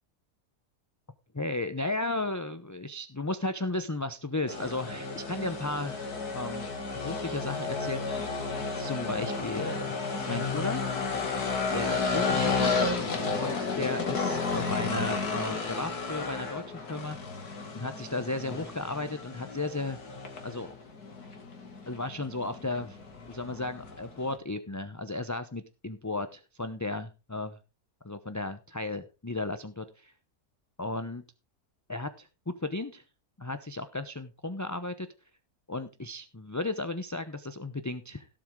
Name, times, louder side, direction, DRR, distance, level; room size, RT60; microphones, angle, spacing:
voice 1, 1.3-6.7 7.0-8.2 8.8-10.0 10.3-10.8 11.7-12.8 13.4-17.2 17.7-20.0 20.4-20.7 21.9-23.0 23.3-27.6 28.0-30.1 30.8-31.2 31.9-33.0 33.4-35.1 35.7-38.3, left 2 dB, 15° left, 10 dB, 0.6 m, -34 dB
sound 1, 4.5-24.4, left 4 dB, 90° left, 2.9 m, -32 dB
17.0 x 7.8 x 3.8 m, 0.31 s
omnidirectional pair, 1.6 m